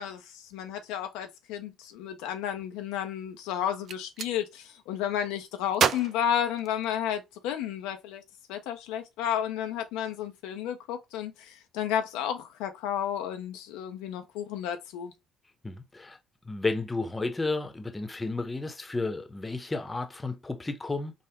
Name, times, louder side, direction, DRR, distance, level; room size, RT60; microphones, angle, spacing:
voice 1, 0.0-8.2 8.5-15.1, left 10 dB, 75° left, 0.4 m, -32 dB
Gunshot gunfire, 3.7-4.3 5.7-7.2, right 7 dB, 50° right, 0.3 m, -30 dB
voice 2, 15.6-16.2 16.5-21.1, left 3 dB, 20° left, 0.7 m, -32 dB
3.4 x 2.1 x 3.3 m
hypercardioid pair, 55°, 0 cm